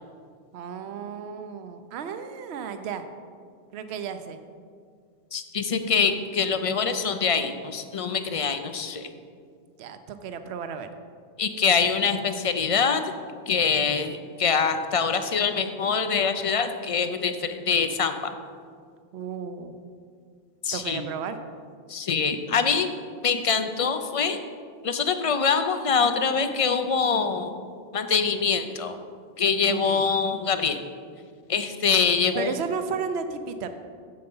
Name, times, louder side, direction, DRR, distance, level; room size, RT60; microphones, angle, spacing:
voice 1, 0.5-3.0 3.7-4.4 9.8-10.9 19.1-19.7 20.7-21.4 29.6-30.0 32.3-33.8, right 6 dB, 75° right, 9 dB, 0.9 m, -33 dB
voice 2, 5.3-9.1 11.4-13.0 13.5-18.3 20.6-21.0 21.9-22.9 23.2-24.4 24.8-27.5 27.9-29.0 29.4-30.8 31.5-32.5, left 5 dB, 45° left, 9 dB, 0.4 m, -24 dB
7.8 x 7.7 x 5.4 m, 2.1 s
omnidirectional pair, 1.1 m